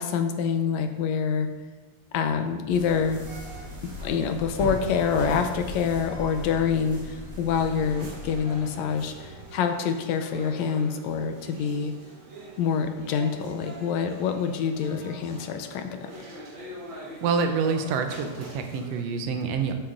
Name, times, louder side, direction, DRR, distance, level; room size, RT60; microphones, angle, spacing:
voice 1, 0.0-1.5 2.1-3.2 4.0-11.9 12.6-16.1, left 6 dB, 75° left, 7 dB, 1.8 m, -26 dB
sound 1, 2.7-9.5, equal, 25° left, 2.7 m, -46 dB
sound 2, 2.7-8.4, right 1 dB, 25° right, 3.4 m, -37 dB
sound 3, 7.5-19.0, right 2 dB, 50° right, 1.8 m, -44 dB
voice 2, 17.2-19.7, right 5 dB, 75° right, 6 dB, 1.7 m, -27 dB
12.5 x 7.2 x 2.6 m, 1.2 s
omnidirectional pair, 3.4 m